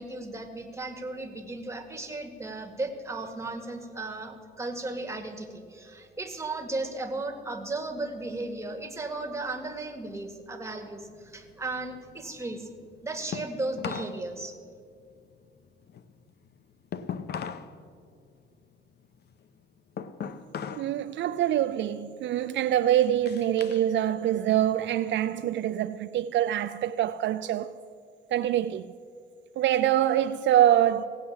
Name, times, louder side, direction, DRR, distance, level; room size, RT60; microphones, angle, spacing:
voice 1, 0.0-12.7 13.0-14.6, right 2 dB, 15° right, 1.7 m, -35 dB
sound 1, 11.1-14.2 14.5-17.7 18.1-21.0 21.3-21.7 22.2-23.9 24.3-25.4, left 7 dB, 55° left, 0.7 m, -40 dB
voice 2, 20.8-27.7 28.3-28.9 29.6-31.0, right 11 dB, 65° right, 0.4 m, -25 dB
17.5 x 8.0 x 7.1 m
cardioid pair, 90°, 20 cm